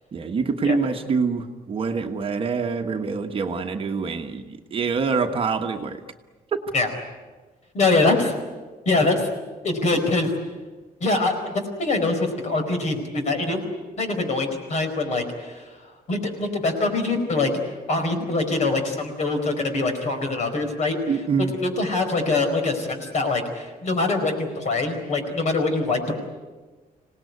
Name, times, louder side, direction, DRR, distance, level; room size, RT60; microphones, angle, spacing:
voice 1, 0.1-6.0 21.1-21.5, right 5 dB, 35° right, 4 dB, 1.3 m, -25 dB
voice 2, 7.7-8.3 8.8-9.3 9.6-10.3 11.0-13.6 14.0-15.6 16.1-17.5 17.9-21.0 21.6-26.1, left 3 dB, 50° left, 6 dB, 4.7 m, -23 dB
26.5 x 18.5 x 9.6 m, 1.3 s
cardioid pair, 175°, 16 cm